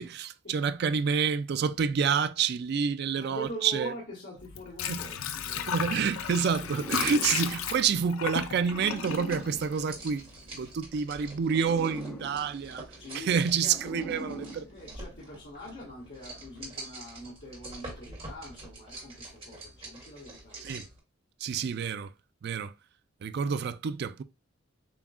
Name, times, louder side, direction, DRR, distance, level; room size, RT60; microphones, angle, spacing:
voice 1, 0.0-3.9 4.9-5.0 5.7-10.2 10.5-12.8 13.1-14.7 20.6-20.9 21.4-22.1 22.4-22.7 23.2-24.2, right 6 dB, 50° right, 0.3 m, -28 dB
voice 2, 3.1-6.2 13.0-14.0 14.6-20.6, right 1 dB, 55° left, 1.7 m, -43 dB
Water / Sink (filling or washing), 4.4-10.3 10.6-10.7, left 8 dB, 80° left, 0.5 m, -34 dB
sound 1, 6.5-10.6 11.3-15.3, right 1 dB, 10° left, 1.1 m, -43 dB
sound 2, 8.7-21.0, right 2 dB, 30° right, 1.5 m, -46 dB
7.0 x 2.4 x 2.4 m
head